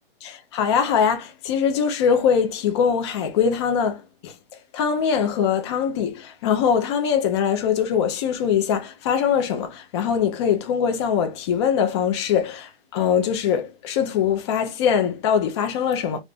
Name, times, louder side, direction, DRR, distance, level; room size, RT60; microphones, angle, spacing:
voice 1, 0.2-4.3 4.7-16.2, left 7 dB, 25° left, 0.5 m, -22 dB
2.5 x 2.5 x 3.3 m
hypercardioid pair, 140°, 31 cm